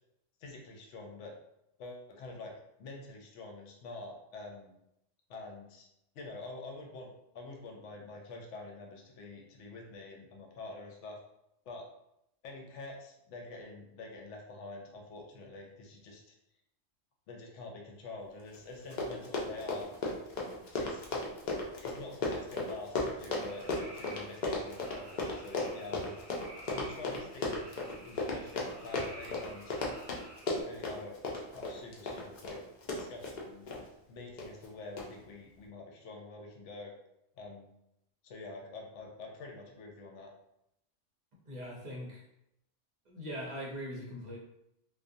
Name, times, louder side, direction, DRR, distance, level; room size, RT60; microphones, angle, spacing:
voice 1, 0.4-1.3 1.8-2.5 2.8-4.7 5.3-5.9 6.1-11.2 11.7-11.8 12.4-16.3 17.3-19.9 20.8-21.0 21.8-26.2 26.7-27.7 28.0-29.8 30.6-31.2 31.5-32.6 32.9-33.7 34.1-36.9 37.4-37.7 38.2-40.3, left 3 dB, 80° left, 1 dB, 0.9 m, -46 dB
Run, 18.5-18.6 18.8-33.8 34.4-34.7 35.0-35.1, left 2 dB, 55° left, 0.5 m, -35 dB
sound 1, 23.4-30.6, right 1 dB, 20° right, 0.9 m, -52 dB
voice 2, 41.5-42.2 43.1-44.4, equal, 50° right, -4 dB, 0.6 m, -41 dB
2.4 x 2.1 x 2.5 m, 0.81 s
omnidirectional pair, 1.2 m